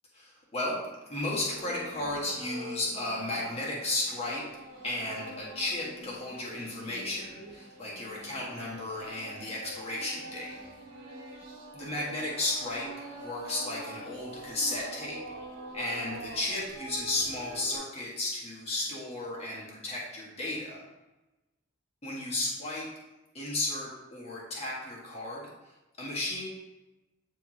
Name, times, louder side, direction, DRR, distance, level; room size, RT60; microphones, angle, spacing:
voice 1, 0.1-0.8 1.1-4.4 4.8-10.5 11.7-15.2 15.7-20.8 22.0-22.9 23.3-26.4, left 2 dB, 30° left, -5 dB, 1.5 m, -34 dB
sound 1, 1.5-17.8, right 1 dB, 75° right, 1.5 m, -45 dB
9.2 x 3.5 x 3.0 m, 1.1 s
head